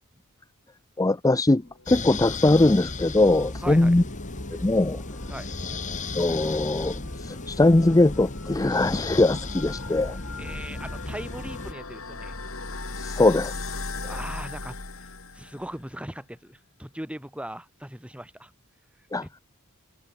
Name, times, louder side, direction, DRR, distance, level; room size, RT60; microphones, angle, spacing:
voice 1, 1.0-4.0 4.6-5.0 6.1-10.2 13.0-13.6 19.1-19.3, left 2 dB, 15° left, 0.5 m, -21 dB
sound 1, 1.7-15.9, left 3 dB, 70° left, 5.3 m, -39 dB
sound 2, 1.9-11.7, left 3 dB, 35° left, 1.6 m, -35 dB
voice 2, 3.6-4.0 5.3-5.5 10.4-12.4 14.0-14.8 15.3-18.5 19.2-19.4, right 1 dB, 5° right, 2.1 m, -39 dB
head